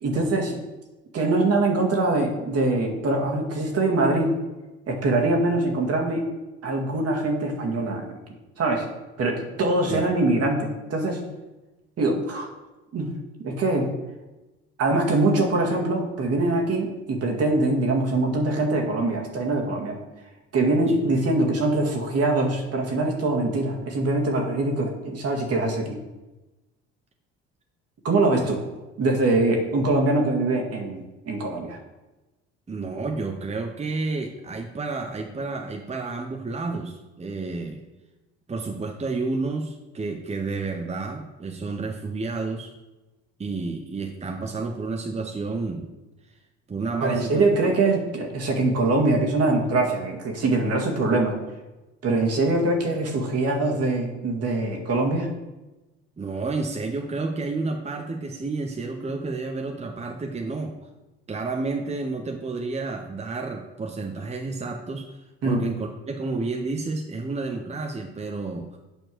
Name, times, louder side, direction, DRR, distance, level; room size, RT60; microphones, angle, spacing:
voice 1, 0.0-0.6 1.1-4.4 4.9-6.2 6.6-8.2 8.6-8.9 9.2-11.2 12.0-12.5 12.9-13.9 14.8-20.0 20.5-26.0 28.0-28.6 29.0-31.8 47.0-51.4 52.0-55.3 65.4-65.6, right 2 dB, 55° right, 1 dB, 1.9 m, -23 dB
voice 2, 32.7-37.8 38.5-42.7 43.4-45.9 46.7-47.8 56.2-60.8 61.3-65.2 65.4-68.8, right 3 dB, 20° right, 3 dB, 0.9 m, -30 dB
8.0 x 4.4 x 6.2 m, 1.1 s
supercardioid pair, 70°, 30 cm